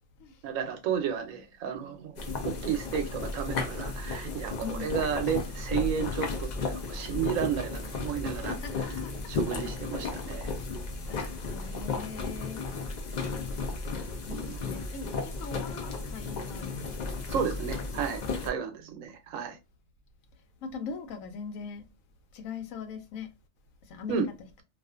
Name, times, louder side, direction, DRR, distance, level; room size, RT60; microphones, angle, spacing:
voice 1, 0.4-8.6 9.3-10.5 14.3-14.6 17.3-19.6 24.1-24.3, right 7 dB, 85° right, 1.0 m, -32 dB
sound 1, 2.2-18.5, left 3 dB, 60° left, 0.4 m, -34 dB
voice 2, 4.5-5.0 8.4-9.1 11.0-12.6 14.2-16.9 17.4-17.5 18.1-18.2 20.6-21.8 22.3-23.3 23.9-24.2, left 5 dB, 90° left, 1.1 m, -40 dB
2.5 x 2.4 x 2.3 m
omnidirectional pair, 1.4 m